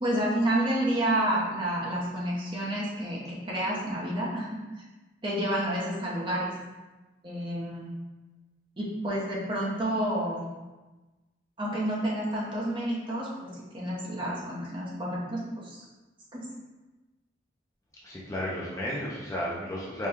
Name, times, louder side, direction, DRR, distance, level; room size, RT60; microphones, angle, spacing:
voice 1, 0.0-4.8 5.2-6.5 7.2-7.9 8.8-10.5 11.6-15.8 16.3-16.5, right 1 dB, 25° right, -5 dB, 0.8 m, -30 dB
voice 2, 18.0-20.1, equal, 15° left, -6 dB, 0.5 m, -33 dB
4.4 x 2.3 x 3.5 m, 1.1 s
head